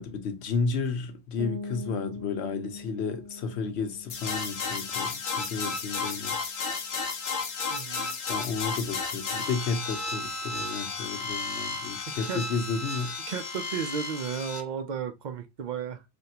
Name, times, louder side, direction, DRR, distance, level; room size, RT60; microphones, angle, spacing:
voice 1, 0.0-6.4 8.3-13.2, left 4 dB, 90° left, 1.0 m, -32 dB
sound 1, 1.4-7.0, left 2 dB, 90° right, 1.0 m, -43 dB
sound 2, 4.1-14.6, left 4 dB, 60° left, 0.8 m, -33 dB
voice 2, 7.7-8.2 12.2-12.4 13.3-16.0, right 7 dB, 55° right, 0.5 m, -34 dB
3.4 x 2.3 x 2.7 m
omnidirectional pair, 1.1 m